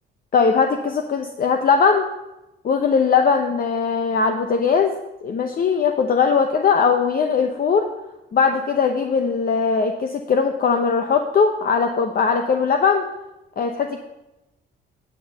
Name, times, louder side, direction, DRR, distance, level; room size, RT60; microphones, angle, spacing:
voice 1, 0.3-2.0 2.6-4.9 5.2-7.9 8.3-13.0 13.6-14.0, left 5 dB, 45° left, 4 dB, 0.8 m, -19 dB
9.9 x 7.6 x 5.6 m, 0.96 s
cardioid pair, 90°, 20 cm